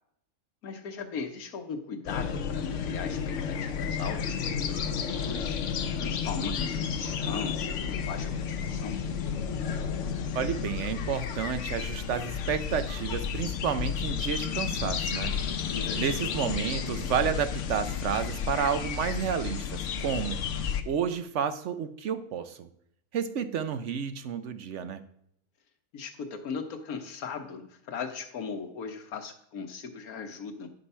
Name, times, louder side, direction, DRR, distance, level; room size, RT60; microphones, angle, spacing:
voice 1, 0.6-5.6 6.0-9.0 15.7-16.2 25.9-30.7, left 5 dB, 90° left, 6 dB, 1.5 m, -38 dB
sound 1, 2.1-20.8, left 7 dB, 65° left, 1.0 m, -32 dB
voice 2, 10.3-15.3 16.0-20.4 20.9-22.7 23.1-25.0, right 7 dB, 65° right, 11 dB, 0.9 m, -31 dB
10.0 x 5.2 x 5.5 m, 0.71 s
omnidirectional pair, 1.5 m